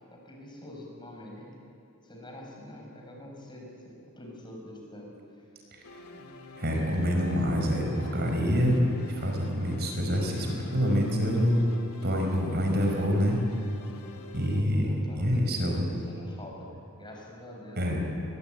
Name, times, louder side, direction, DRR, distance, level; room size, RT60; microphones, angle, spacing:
voice 1, 0.1-1.6 2.0-5.5 9.8-10.6 14.8-18.2, left 1 dB, 20° left, 0 dB, 5.2 m, -46 dB
sound 1, 5.8-14.6, left 2 dB, 85° left, 2.4 m, -47 dB
voice 2, 6.6-8.8 9.0-10.5 10.7-11.6 12.0-13.4 14.3-15.9 17.8-18.0, equal, 50° right, 2 dB, 4.8 m, -26 dB
21.5 x 21.5 x 9.0 m, 2.7 s
head